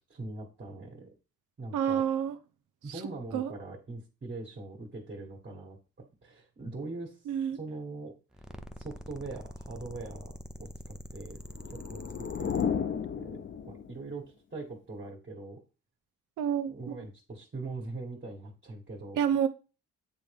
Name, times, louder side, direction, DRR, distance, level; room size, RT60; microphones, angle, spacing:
voice 1, 0.1-1.1 1.6-2.1 2.8-7.2 7.5-8.1 8.8-11.4 11.7-13.4 13.6-15.6 16.7-19.2, right 3 dB, 35° right, 1.7 m, -42 dB
voice 2, 1.7-2.3 3.3-3.5 7.3-7.6 16.4-17.0 19.2-19.5, right 9 dB, 85° right, 0.8 m, -28 dB
sound 1, 8.3-12.7, equal, ahead, 0.5 m, -44 dB
sound 2, 11.5-14.1, left 7 dB, 40° left, 0.6 m, -33 dB
8.1 x 3.6 x 3.5 m
cardioid pair, 90°, 30 cm